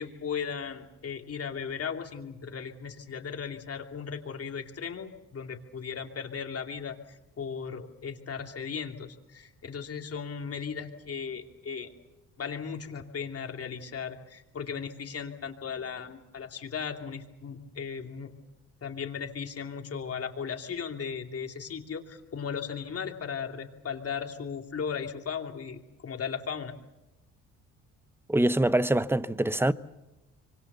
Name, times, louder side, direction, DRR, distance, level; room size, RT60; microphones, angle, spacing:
voice 1, 0.0-11.9 12.4-18.3 18.8-26.7, left 6 dB, 45° left, 2.8 m, -36 dB
voice 2, 28.3-29.7, right 1 dB, 5° right, 0.9 m, -24 dB
25.5 x 24.5 x 6.9 m
cardioid pair, 75°, 32 cm